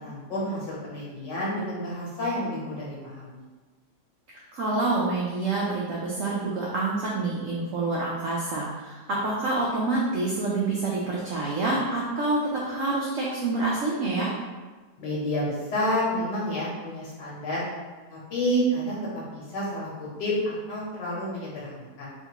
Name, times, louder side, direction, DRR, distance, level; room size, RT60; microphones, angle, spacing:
voice 1, 0.0-3.4 15.0-17.7 18.1-19.0 19.3-22.1, equal, 70° left, -6 dB, 1.7 m, -29 dB
voice 2, 4.5-14.3, right 2 dB, 85° right, -4 dB, 0.7 m, -27 dB
3.7 x 2.5 x 2.8 m, 1.3 s
omnidirectional pair, 2.0 m